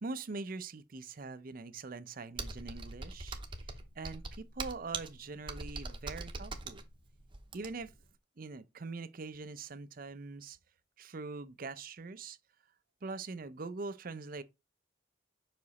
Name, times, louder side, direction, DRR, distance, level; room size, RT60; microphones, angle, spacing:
voice 1, 0.0-3.4 4.0-6.8 7.5-7.9 8.4-10.6 11.0-12.4 13.0-14.4, right 3 dB, 45° right, 0.5 m, -43 dB
Computer keyboard, 2.4-8.0, right 3 dB, 25° right, 0.8 m, -42 dB
5.8 x 4.9 x 4.1 m
head